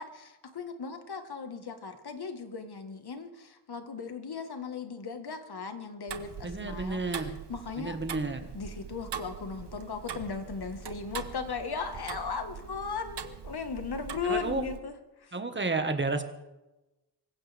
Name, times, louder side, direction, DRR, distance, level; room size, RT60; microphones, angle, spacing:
voice 1, 0.0-7.0 7.5-7.9 8.5-14.9, left 5 dB, 65° left, 7 dB, 1.7 m, -37 dB
Tick-tock, 6.1-14.8, right 7 dB, 80° right, 1.1 m, -42 dB
voice 2, 6.4-7.4 7.8-8.5 14.2-14.6 15.3-16.2, right 3 dB, 25° right, 7 dB, 1.6 m, -31 dB
25.0 x 15.5 x 3.5 m, 1.0 s
wide cardioid pair, 115°, 41 cm